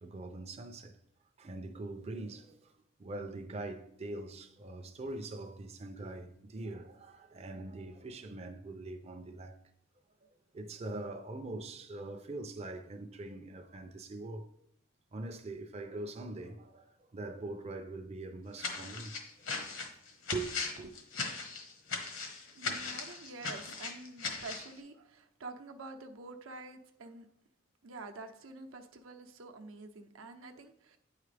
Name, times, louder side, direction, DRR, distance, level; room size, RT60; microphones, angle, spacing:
voice 1, 0.0-0.9 1.4-2.7 3.0-9.6 10.5-14.5 15.1-19.1 20.3-20.9, right 2 dB, 30° right, 0.5 m, -42 dB
sound 1, 18.6-24.7, left 4 dB, 75° left, 1.3 m, -38 dB
voice 2, 22.5-27.3 27.8-31.0, right 3 dB, 90° right, 0.7 m, -48 dB
9.1 x 4.8 x 3.3 m
head